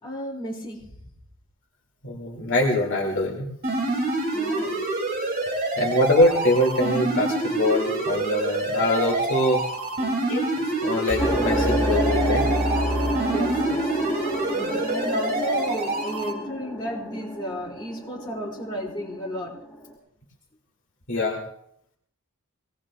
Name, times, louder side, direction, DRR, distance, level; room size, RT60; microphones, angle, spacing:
voice 1, 0.0-0.9 4.3-4.8 13.3-13.9 14.5-19.5, equal, 20° left, -5 dB, 4.2 m, -33 dB
voice 2, 2.0-3.5 5.8-9.6 10.0-10.5 10.8-12.5 21.1-21.4, left 1 dB, 55° left, -2 dB, 2.5 m, -23 dB
sound 1, 3.6-16.3, right 2 dB, 40° right, 2.7 m, -27 dB
sound 2, 11.1-14.1, left 1 dB, 85° right, 1.6 m, -28 dB
sound 3, 11.2-19.9, equal, 5° left, 4.6 m, -30 dB
25.5 x 18.5 x 2.4 m, 0.71 s
head